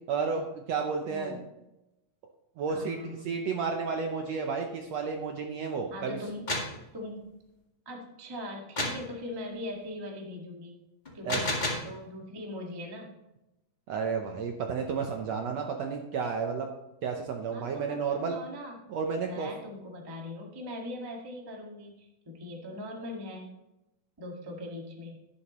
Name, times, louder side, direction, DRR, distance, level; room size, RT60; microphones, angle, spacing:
voice 1, 0.1-1.4 2.6-6.2 11.2-11.6 13.9-16.7 17.0-18.4 18.9-19.5, right 5 dB, 70° right, 3 dB, 1.7 m, -32 dB
voice 2, 1.0-1.7 2.7-3.3 5.9-6.5 6.9-7.3 7.8-10.8 11.1-13.1 17.5-18.8 19.2-23.5 24.2-25.2, left 1 dB, 15° right, 0 dB, 0.8 m, -41 dB
sound 1, 6.2-6.8 8.8-9.1 11.1-11.9, left 2 dB, 20° left, 1.1 m, -31 dB
11.5 x 11.5 x 3.1 m, 0.93 s
omnidirectional pair, 3.8 m